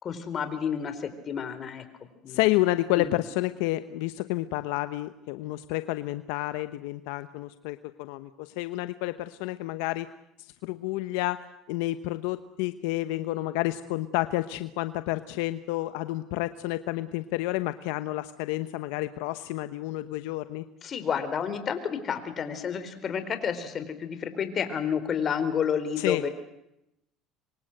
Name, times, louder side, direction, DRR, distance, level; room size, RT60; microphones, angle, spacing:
voice 1, 0.0-1.8 2.2-2.5 2.9-3.1 20.8-26.3, left 7 dB, 40° left, 10 dB, 4.3 m, -30 dB
voice 2, 2.3-10.1 10.6-20.6 26.0-26.2, left 17 dB, 80° left, 11 dB, 1.0 m, -30 dB
26.5 x 24.5 x 8.0 m, 0.84 s
supercardioid pair, 105°, 0 cm